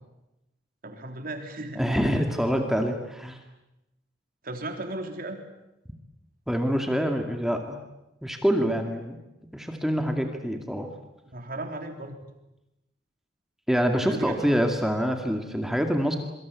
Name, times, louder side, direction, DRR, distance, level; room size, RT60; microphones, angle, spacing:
voice 1, 0.8-1.8 4.4-5.4 11.3-12.2 14.1-14.4, right 2 dB, 50° right, 5 dB, 3.6 m, -35 dB
voice 2, 1.7-3.4 6.5-7.8 8.2-9.2 9.5-10.9 13.7-16.2, equal, ahead, 4 dB, 2.2 m, -26 dB
26.5 x 24.5 x 8.4 m, 0.94 s
head